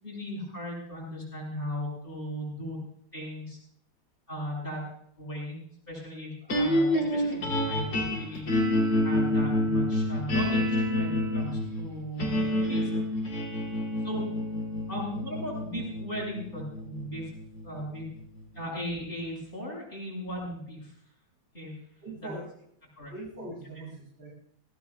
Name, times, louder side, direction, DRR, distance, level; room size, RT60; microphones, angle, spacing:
voice 1, 0.0-2.8 3.1-3.6 4.3-4.9 5.2-5.6 5.9-8.5 9.0-12.9 14.0-14.2 14.9-17.3 17.6-18.0 18.5-20.9 21.5-21.7 22.1-22.3 23.0-23.1, equal, 25° left, -4 dB, 7.8 m, -37 dB
sound 1, 6.5-18.8, left 1 dB, 65° left, 4.1 m, -28 dB
voice 2, 22.0-22.5 23.1-24.3, right 2 dB, 80° right, -5 dB, 8.7 m, -41 dB
25.0 x 18.0 x 2.5 m, 0.67 s
omnidirectional pair, 2.1 m